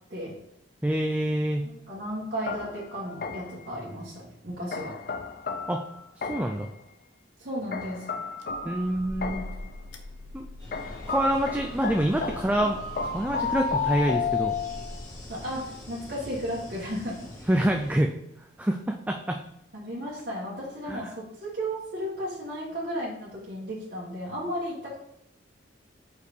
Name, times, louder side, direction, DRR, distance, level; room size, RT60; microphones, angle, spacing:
voice 1, 0.8-1.7 5.7-5.8 6.2-6.7 8.6-9.5 10.3-10.5 11.1-12.8 13.1-14.6 17.5-18.1 18.6-19.4 20.9-21.1, right 1 dB, 10° right, 3 dB, 0.4 m, -26 dB
voice 2, 1.6-5.0 7.4-8.1 15.3-17.3 19.8-25.0, equal, 50° right, -6 dB, 1.5 m, -34 dB
sound 1, 2.5-3.7 4.7-6.7 7.7-9.7 10.7-15.0, left 5 dB, 50° left, 0.5 m, -32 dB
sound 2, 8.4-15.8, left 1 dB, 75° left, 0.8 m, -43 dB
sound 3, 10.6-18.0, left 1 dB, 15° left, 1.5 m, -45 dB
5.1 x 4.7 x 5.0 m, 0.77 s
head